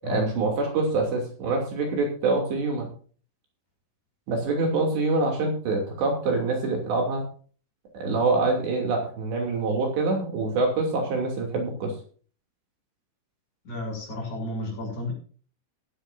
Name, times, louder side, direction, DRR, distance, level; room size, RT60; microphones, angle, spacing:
voice 1, 0.1-2.9 4.3-7.2 7.9-11.9, right 3 dB, 60° right, 1 dB, 4.8 m, -25 dB
voice 2, 13.6-15.1, left 2 dB, 35° left, 0 dB, 7.9 m, -32 dB
16.0 x 13.0 x 2.7 m, 0.42 s
omnidirectional pair, 6.0 m